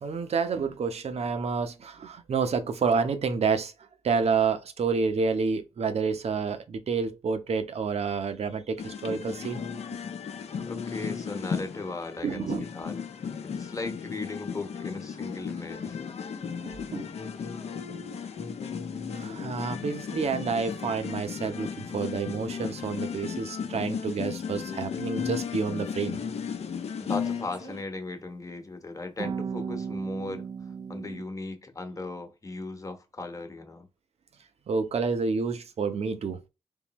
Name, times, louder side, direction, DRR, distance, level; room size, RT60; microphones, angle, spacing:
voice 1, 0.0-3.7 4.0-9.6 12.2-12.6 16.6-17.1 19.1-26.2 34.7-36.5, right 5 dB, 65° right, 0.8 m, -29 dB
sound 1, 8.8-27.8, left 6 dB, 65° left, 0.7 m, -35 dB
voice 2, 10.7-12.5 12.7-13.0 13.4-16.0 27.0-30.5 30.9-33.9, left 3 dB, 30° left, 1.1 m, -37 dB
sound 2, 27.2-27.8 29.2-31.2, right 6 dB, 35° right, 0.3 m, -36 dB
3.8 x 3.3 x 3.0 m
cardioid pair, 60°, 12 cm